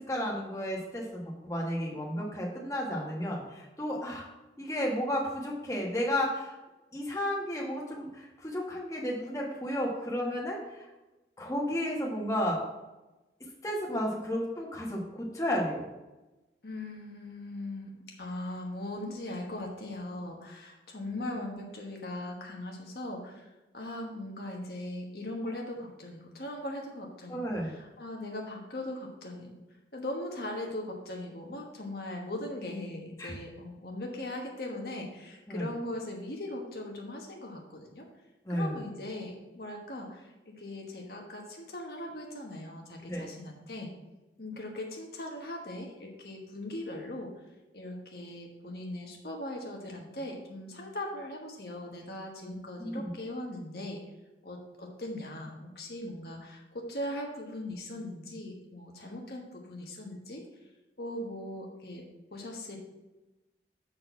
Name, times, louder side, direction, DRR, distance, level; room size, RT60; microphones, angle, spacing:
voice 1, 0.1-4.3 4.6-6.6 6.9-10.9 11.4-12.6 13.6-15.9 27.3-27.7 33.2-33.3 35.5-35.7 38.4-38.8 43.0-43.3 52.8-53.1, equal, 20° left, -2 dB, 1.3 m, -32 dB
voice 2, 16.6-23.5 23.7-29.6 29.9-38.0 38.5-43.9 44.4-47.3 47.7-54.0 54.4-60.4 61.0-62.0 62.3-62.8, left 1 dB, 60° left, 0 dB, 1.2 m, -39 dB
7.5 x 4.1 x 6.0 m, 1.1 s
head